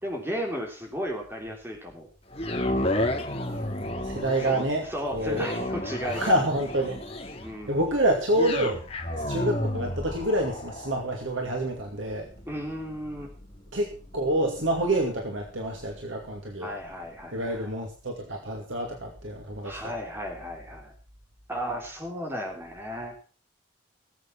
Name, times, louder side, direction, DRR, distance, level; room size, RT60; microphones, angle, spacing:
voice 1, 0.0-2.1 4.4-6.4 7.4-7.8 12.5-13.3 16.6-17.7 19.6-20.9 21.5-23.2, equal, 10° right, 1 dB, 3.3 m, -34 dB
sound 1, 2.3-16.5 17.0-17.1, left 1 dB, 30° left, 2.4 m, -33 dB
voice 2, 4.0-4.9 5.1-5.6 6.1-7.0 7.7-8.8 9.3-12.3 13.7-16.7 17.3-19.8, right 1 dB, 85° right, 1 dB, 2.5 m, -27 dB
19.0 x 8.0 x 5.8 m, 0.38 s
head